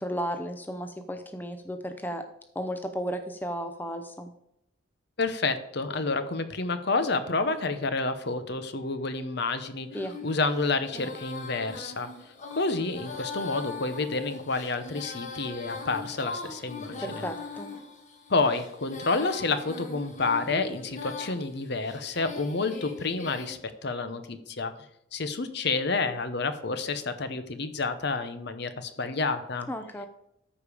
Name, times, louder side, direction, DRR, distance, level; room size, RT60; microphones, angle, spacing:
voice 1, 0.0-2.2 2.5-4.3 9.9-10.2 17.0-17.7 29.7-30.1, equal, 10° left, 7 dB, 0.6 m, -34 dB
voice 2, 5.2-12.1 12.5-17.2 18.3-24.7 25.1-29.7, left 3 dB, 55° left, 10 dB, 0.8 m, -29 dB
Female singing, 9.9-23.5, left 4 dB, 35° left, 1.5 m, -41 dB
13.5 x 5.0 x 4.9 m, 0.79 s
head